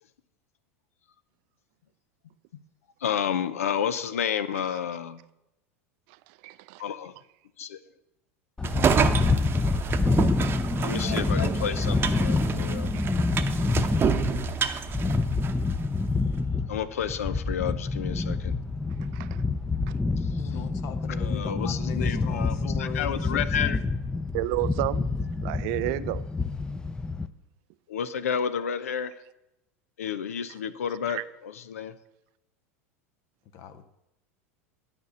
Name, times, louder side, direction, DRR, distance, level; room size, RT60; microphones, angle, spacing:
voice 1, 3.0-5.2 6.8-7.1 7.6-7.8 10.8-12.9 16.7-18.5 20.3-20.5 21.2-23.8 27.9-29.1 30.0-31.9, left 8 dB, 85° left, 0.7 m, -31 dB
voice 2, 6.3-6.8 12.9-13.1 19.1-19.4 24.3-25.1 25.4-26.2 31.1-31.2, right 18 dB, 60° right, 0.4 m, -31 dB
sound 1, 8.6-27.3, left 3 dB, 10° left, 0.6 m, -27 dB
sound 2, 8.6-15.8, right 6 dB, 30° right, 0.8 m, -28 dB
voice 3, 20.3-23.4 33.5-33.9, left 8 dB, 55° left, 1.0 m, -39 dB
9.6 x 5.3 x 7.9 m
hypercardioid pair, 90°, 8 cm